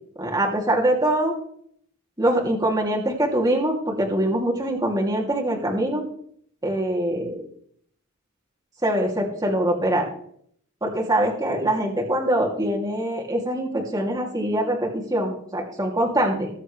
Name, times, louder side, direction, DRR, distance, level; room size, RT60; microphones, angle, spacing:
voice 1, 0.2-1.3 2.2-6.0 6.6-7.4 8.8-10.1 10.8-16.5, right 1 dB, 20° right, -1 dB, 2.8 m, -23 dB
21.0 x 8.0 x 3.3 m, 0.65 s
head